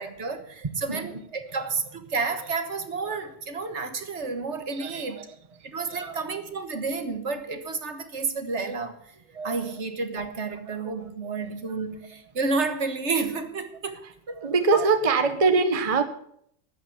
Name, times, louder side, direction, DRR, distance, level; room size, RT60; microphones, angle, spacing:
voice 1, 0.0-5.2 5.6-9.0 9.4-14.4 14.7-14.9, right 4 dB, 65° right, 1.7 m, -31 dB
voice 2, 5.9-6.2 9.3-9.6 11.4-11.5 14.4-16.0, right 4 dB, 30° right, 1.0 m, -23 dB
12.5 x 9.0 x 8.2 m
omnidirectional pair, 1.3 m